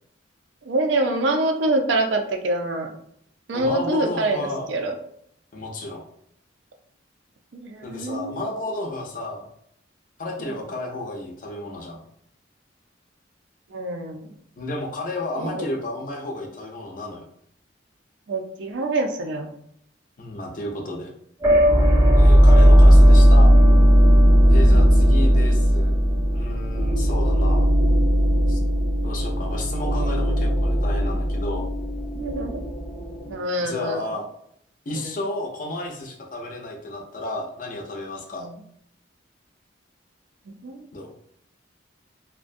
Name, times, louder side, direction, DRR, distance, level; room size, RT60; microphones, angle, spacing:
voice 1, 0.6-2.9 3.5-5.0 7.5-8.4 10.4-10.7 13.7-14.3 15.4-15.7 18.3-19.5 22.1-22.3 24.7-25.0 32.1-32.6 33.3-34.1 34.9-35.2 38.3-38.6 40.6-40.8, right 2 dB, 70° right, 4 dB, 0.4 m, -26 dB
voice 2, 3.5-4.7 5.5-6.0 7.8-9.5 10.2-12.0 14.6-17.2 20.2-21.1 22.2-23.5 24.5-26.0 26.3-27.7 28.5-28.6 29.0-31.7 33.6-34.3 34.9-38.5 40.9-41.1, left 1 dB, 45° left, 0 dB, 0.5 m, -32 dB
sound 1, 21.4-33.3, equal, 15° right, 0.5 m, -16 dB
2.4 x 2.1 x 2.5 m, 0.70 s
head